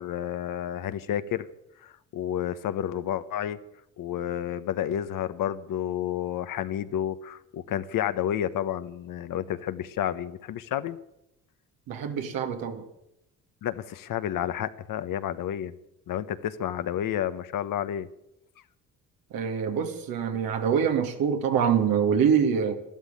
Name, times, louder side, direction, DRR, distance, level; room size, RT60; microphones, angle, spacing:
voice 1, 0.0-1.5 1.8-3.6 4.0-11.0 13.6-15.7 16.1-18.1 20.3-20.4, left 10 dB, 65° left, 12 dB, 1.1 m, -30 dB
voice 2, 11.9-12.8 19.3-22.8, right 7 dB, 80° right, 5 dB, 2.3 m, -25 dB
13.0 x 12.5 x 8.9 m, 0.81 s
supercardioid pair, 70°, 35 cm